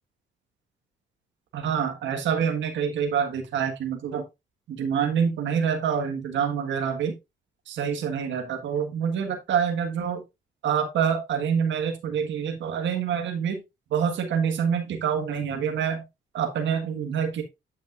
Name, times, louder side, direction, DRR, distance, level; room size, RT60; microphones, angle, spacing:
voice 1, 1.5-4.2 4.7-7.1 7.7-10.2 10.6-13.6 13.9-16.1 16.3-17.4, right 7 dB, 70° right, 4 dB, 1.6 m, -26 dB
8.5 x 7.6 x 2.5 m, 0.22 s
cardioid pair, 90°, 20 cm